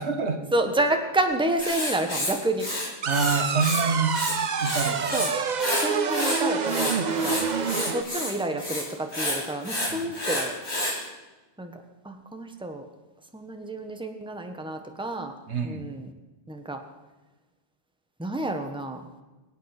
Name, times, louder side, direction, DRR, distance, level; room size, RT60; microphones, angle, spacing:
voice 1, 0.0-0.4 3.1-4.1 4.6-5.3 7.1-7.6 9.9-10.1 15.5-15.8, right 5 dB, 85° right, 6 dB, 1.7 m, -27 dB
voice 2, 0.5-2.7 5.1-5.3 5.7-7.4 7.9-10.6 11.6-12.9 13.3-15.3 15.6-16.1 16.5-16.8 18.2-19.1, right 1 dB, 5° right, 5 dB, 1.2 m, -29 dB
Writing, 1.6-3.8 4.1-5.3 5.6-11.0, left 1 dB, 80° left, 3.4 m, -30 dB
sound 1, 3.0-8.0, right 5 dB, 45° right, 0.8 m, -27 dB
23.0 x 8.4 x 6.0 m, 1.1 s
omnidirectional pair, 1.1 m